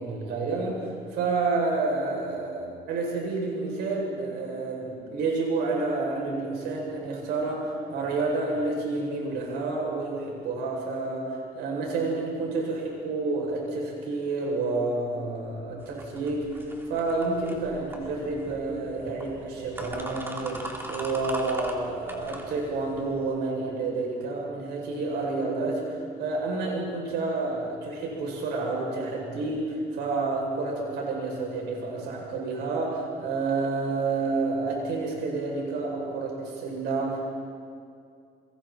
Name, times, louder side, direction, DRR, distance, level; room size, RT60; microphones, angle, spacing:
voice 1, 0.0-16.6 16.9-37.3, right 3 dB, 80° right, -2 dB, 7.7 m, -29 dB
sound 1, 15.8-23.3, right 1 dB, 15° right, 3.5 m, -41 dB
29.5 x 23.0 x 4.6 m, 2.3 s
cardioid pair, 110°, 17 cm